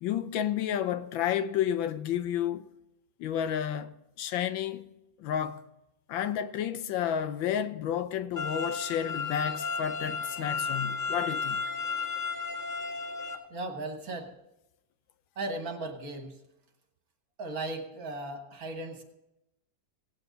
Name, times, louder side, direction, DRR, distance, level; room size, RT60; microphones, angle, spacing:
voice 1, 0.0-2.7 3.2-4.9 5.2-5.6 6.1-11.7, left 9 dB, 80° left, 1.4 m, -31 dB
sound 1, 8.4-13.4, left 4 dB, 25° left, 1.6 m, -33 dB
voice 2, 13.5-14.3 15.4-16.4 17.4-19.0, right 2 dB, 50° right, 1.8 m, -36 dB
18.0 x 8.8 x 4.0 m
omnidirectional pair, 2.1 m